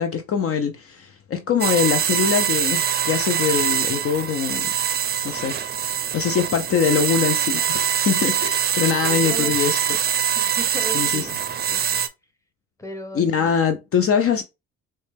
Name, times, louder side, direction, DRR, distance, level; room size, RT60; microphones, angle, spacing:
voice 1, 0.0-4.7 5.2-5.6 5.8-9.8 10.9-11.3 13.1-14.4, left 7 dB, 50° left, 0.5 m, -23 dB
sound 1, 1.6-12.1, right 8 dB, 35° right, 0.5 m, -23 dB
voice 2, 9.0-9.6 10.3-11.3 11.7-12.0 12.8-13.5, equal, 10° left, 0.9 m, -35 dB
4.0 x 2.2 x 3.2 m
cardioid pair, 90°, 30 cm